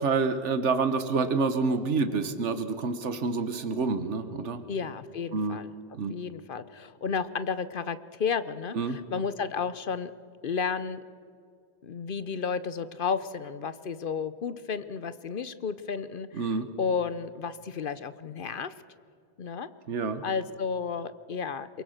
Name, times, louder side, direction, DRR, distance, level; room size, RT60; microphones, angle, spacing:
voice 1, 0.0-4.6 5.3-5.6 6.0-6.1 8.7-9.0 16.3-16.7 19.9-20.2, right 4 dB, 85° right, 10 dB, 1.4 m, -28 dB
voice 2, 4.7-5.7 6.1-10.1 10.4-11.0 11.8-18.7 19.4-19.7 20.2-21.8, left 6 dB, 55° left, 14 dB, 0.8 m, -32 dB
23.0 x 22.5 x 6.5 m, 2.2 s
omnidirectional pair, 1.2 m